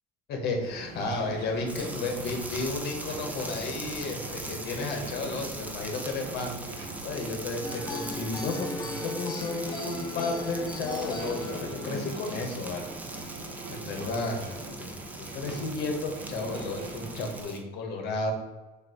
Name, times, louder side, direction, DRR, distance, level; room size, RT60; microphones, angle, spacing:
voice 1, 0.3-12.9 13.7-18.3, left 3 dB, 75° left, 2 dB, 1.6 m, -33 dB
sound 1, 0.6-17.4, right 3 dB, 75° right, 1.2 m, -42 dB
sound 2, 1.7-17.6, right 1 dB, 10° right, 0.7 m, -41 dB
sound 3, 7.6-12.7, left 3 dB, 25° left, 0.9 m, -38 dB
7.4 x 2.7 x 5.1 m, 1.2 s
cardioid pair, 110°, 17 cm